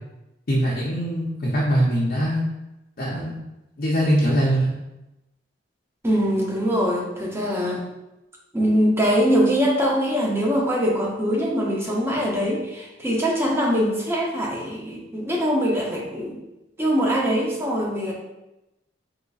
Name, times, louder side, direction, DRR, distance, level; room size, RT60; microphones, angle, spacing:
voice 1, 0.5-2.4 3.0-3.4 3.8-4.7, equal, 50° left, -6 dB, 0.6 m, -22 dB
voice 2, 6.0-7.8 8.5-16.4 16.8-18.1, equal, 15° right, -2 dB, 0.6 m, -22 dB
3.9 x 3.0 x 2.4 m, 0.96 s
head